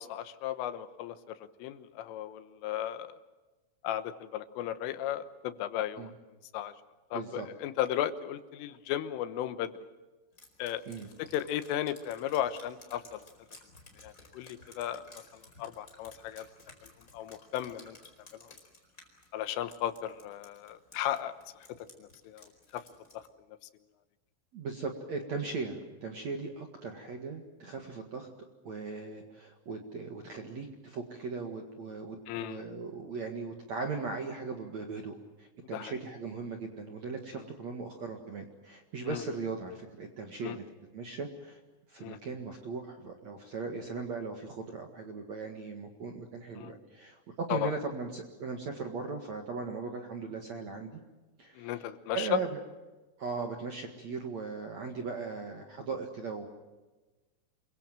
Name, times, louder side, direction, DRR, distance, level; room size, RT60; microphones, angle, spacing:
voice 1, 0.0-3.2 3.8-6.1 6.5-6.7 7.1-9.7 10.6-10.8 11.2-13.3 14.0-16.5 16.8-18.0 18.4-18.5 19.3-21.3 22.0-22.9 23.1-23.2 32.3-32.6 35.7-36.0 37.3-37.5 39.0-39.2 40.4-40.6 42.0-42.2 46.6-46.7 47.5-47.7 51.6-52.4, left 11 dB, 80° left, 12 dB, 3.7 m, -35 dB
voice 2, 7.1-7.5 10.9-11.1 24.5-28.3 28.6-40.6 40.9-41.6 41.9-51.0 51.4-51.8 52.1-52.6 53.2-56.5, right 4 dB, 55° right, 4 dB, 2.0 m, -38 dB
Drip, 10.4-23.3, left 2 dB, 15° left, 4.4 m, -56 dB
28.0 x 23.0 x 7.5 m, 1.2 s
omnidirectional pair, 5.8 m